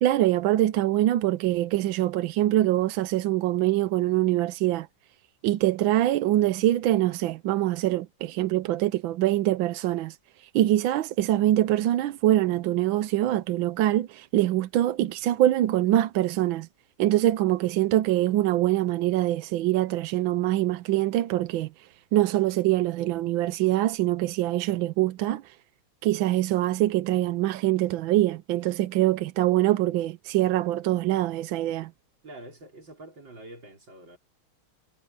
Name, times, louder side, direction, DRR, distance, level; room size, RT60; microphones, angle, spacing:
voice 1, 0.0-4.9 5.4-16.7 17.0-25.6 26.0-31.9, right 14 dB, 75° right, 1.3 m, -24 dB
voice 2, 32.2-34.2, right 1 dB, 55° right, 5.5 m, -46 dB
omnidirectional pair, 2.3 m